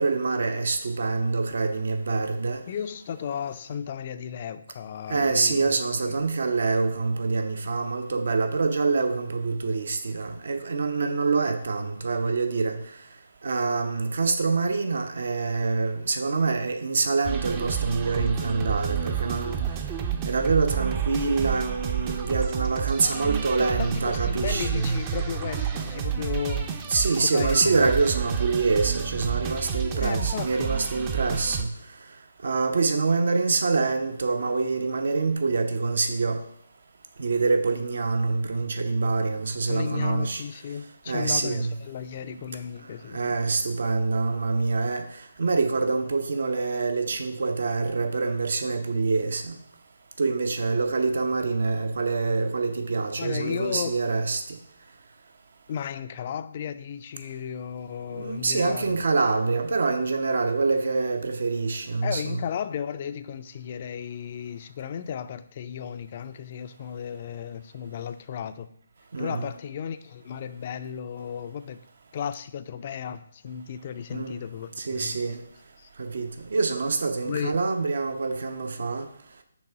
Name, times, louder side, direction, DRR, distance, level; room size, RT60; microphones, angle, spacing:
voice 1, 0.0-2.6 5.1-12.8 13.4-19.6 20.2-25.0 26.9-31.7 32.4-36.4 37.2-40.4 41.1-41.7 43.1-45.0 45.4-49.5 50.2-54.6 58.1-62.4 69.1-69.5 74.1-74.3 74.8-75.4 76.0-79.1, right 4 dB, 60° right, 7 dB, 0.7 m, -25 dB
voice 2, 2.7-5.7 6.0-6.2 23.6-26.7 27.1-27.9 30.0-30.7 39.7-43.4 53.2-54.0 55.7-59.0 62.0-68.7 69.2-71.8 72.1-75.2 75.8-75.9 77.2-77.6, left 8 dB, 40° left, 12 dB, 0.4 m, -34 dB
sound 1, 17.2-31.6, right 8 dB, 25° right, 0.5 m, -30 dB
6.2 x 3.5 x 4.6 m, 0.72 s
figure-of-eight pair, 145°, 0 cm